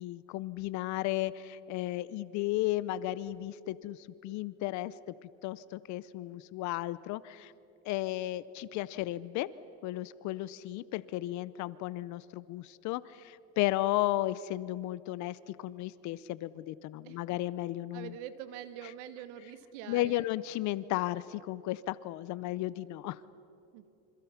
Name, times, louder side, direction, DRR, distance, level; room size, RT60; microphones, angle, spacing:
voice 1, 0.0-4.9 5.4-7.5 7.9-9.5 9.8-18.1 19.9-23.2, left 16 dB, 55° left, 17 dB, 0.6 m, -34 dB
voice 2, 17.9-20.3 23.7-23.9, right 10 dB, 90° right, 12 dB, 1.5 m, -45 dB
28.0 x 26.5 x 5.8 m, 2.9 s
cardioid pair, 140°, 35 cm